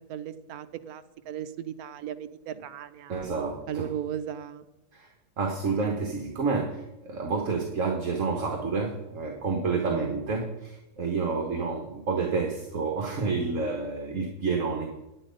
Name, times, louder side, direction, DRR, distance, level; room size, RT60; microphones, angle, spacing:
voice 1, 0.1-3.3 3.7-4.7 9.8-10.2, right 10 dB, 75° right, 12 dB, 1.1 m, -36 dB
voice 2, 3.1-3.9 4.9-5.1 5.4-14.9, right 4 dB, 55° right, 2 dB, 1.4 m, -29 dB
10.0 x 8.9 x 5.1 m, 0.98 s
omnidirectional pair, 1.7 m